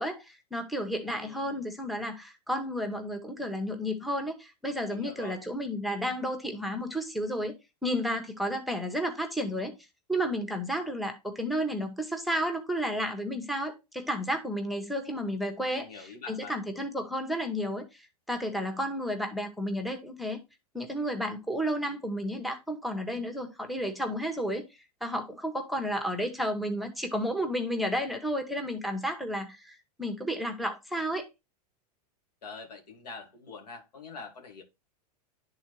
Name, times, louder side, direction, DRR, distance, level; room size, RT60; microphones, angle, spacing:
voice 1, 0.0-7.5 7.8-9.7 10.1-20.4 20.7-24.6 25.0-31.2, equal, ahead, 1.1 m, -32 dB
voice 2, 1.0-1.6 4.9-5.4 15.7-16.6 32.4-34.6, left 4 dB, 85° left, 2.0 m, -45 dB
10.0 x 3.8 x 3.1 m
hypercardioid pair, 110°, 20 cm